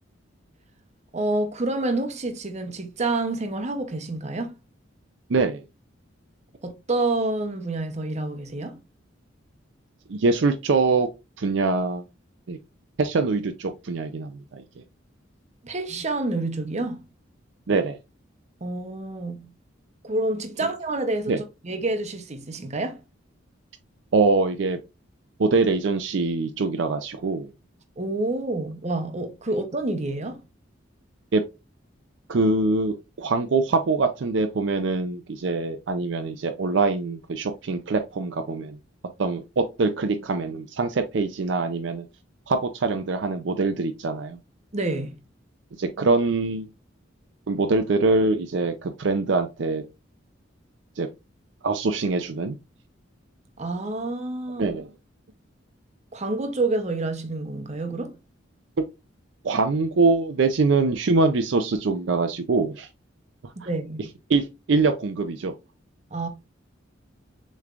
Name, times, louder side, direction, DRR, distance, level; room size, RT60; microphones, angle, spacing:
voice 1, 1.1-4.5 6.6-8.8 15.6-17.0 18.6-19.5 20.0-23.0 28.0-30.4 44.7-45.2 53.6-54.7 56.1-58.1 63.6-64.1 66.1-66.3, right 2 dB, 35° right, 0.8 m, -28 dB
voice 2, 5.3-5.6 10.1-11.1 11.4-12.1 12.5-12.6 13.0-14.6 17.7-18.0 21.3-21.4 24.1-24.8 25.4-27.5 31.3-31.4 32.3-38.8 39.2-42.1 42.5-44.4 45.8-46.7 47.5-49.8 51.0-51.1 51.6-52.6 54.6-54.9 59.4-62.9 63.6-63.7 64.3-65.5, right 3 dB, 65° right, 0.5 m, -23 dB
6.6 x 3.2 x 2.4 m
head